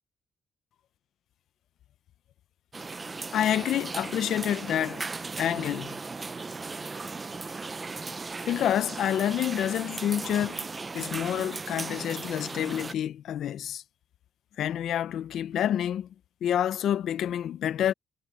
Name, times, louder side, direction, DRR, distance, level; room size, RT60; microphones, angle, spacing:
sound 1, 2.7-12.9, right 4 dB, 30° right, 0.8 m, -37 dB
voice 1, 3.3-5.0 5.4-6.0 8.5-10.7 10.9-13.8 14.6-16.1 16.4-17.9, left 10 dB, 75° left, 0.8 m, -28 dB
cardioid pair, 90°, 0 cm